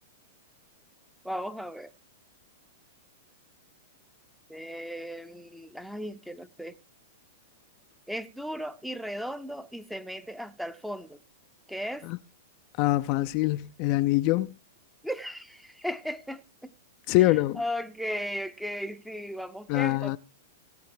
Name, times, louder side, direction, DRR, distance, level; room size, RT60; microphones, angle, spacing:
voice 1, 1.2-1.9 4.5-6.8 8.1-11.2 11.7-12.1 15.0-16.7 17.2-20.2, equal, ahead, 0.9 m, -36 dB
voice 2, 12.8-14.5 17.1-17.6 19.7-20.2, left 17 dB, 40° left, 0.6 m, -24 dB
18.0 x 9.3 x 4.7 m
figure-of-eight pair, 100°, 0 cm